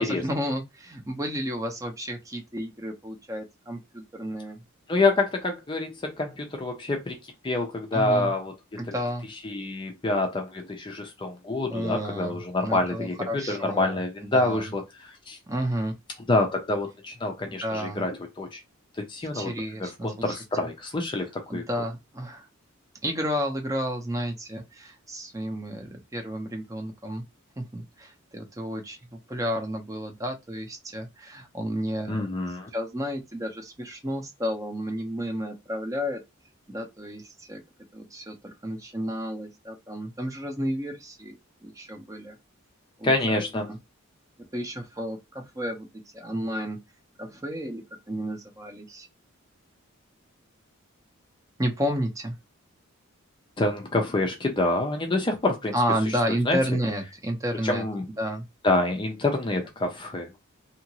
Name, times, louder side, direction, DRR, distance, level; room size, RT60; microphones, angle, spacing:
voice 1, 0.0-4.6 7.9-8.3 8.8-9.3 11.7-14.0 14.3-14.7 15.5-15.9 17.5-18.0 19.3-20.3 21.5-22.5 23.0-27.2 27.6-32.2 32.7-36.2 36.7-37.6 37.9-42.4 43.0-43.8 44.5-45.9 46.1-46.8 47.2-47.8 48.1-49.1 51.6-52.3 55.7-57.8 58.2-58.4, equal, 15° right, 0.6 m, -31 dB
voice 2, 4.9-7.2 7.4-8.9 9.4-15.4 16.3-18.6 19.0-19.5 19.8-21.7 32.1-32.7 43.0-43.7 53.6-55.7 56.1-56.2 56.5-56.6 57.6-58.1 58.6-60.4, left 2 dB, 20° left, 0.5 m, -27 dB
2.8 x 2.5 x 2.9 m
head